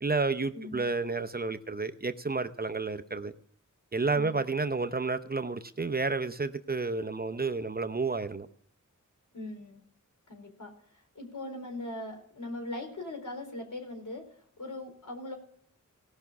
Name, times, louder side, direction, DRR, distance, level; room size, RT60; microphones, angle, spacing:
voice 1, 0.0-3.3 3.9-8.5, right 3 dB, 30° right, 10 dB, 0.7 m, -31 dB
voice 2, 9.3-9.8 10.3-14.2 14.6-15.4, left 2 dB, 75° left, 2 dB, 4.4 m, -40 dB
18.0 x 6.0 x 6.9 m, 0.67 s
wide cardioid pair, 95°, 31 cm